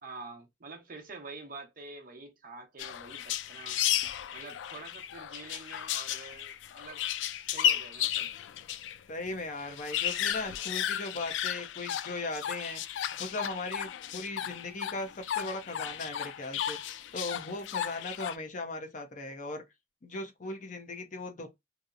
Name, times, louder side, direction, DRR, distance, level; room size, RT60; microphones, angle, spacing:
voice 1, 0.0-3.8 4.3-7.0 7.5-8.3, right 3 dB, 50° right, 0.8 m, -47 dB
sound 1, 2.8-9.0 9.3-9.4 9.6-18.4, left 10 dB, 80° left, 0.3 m, -34 dB
voice 2, 9.1-12.8 13.2-16.8 17.1-19.6 20.0-21.5, left 2 dB, 45° left, 0.6 m, -38 dB
2.8 x 2.0 x 2.4 m
head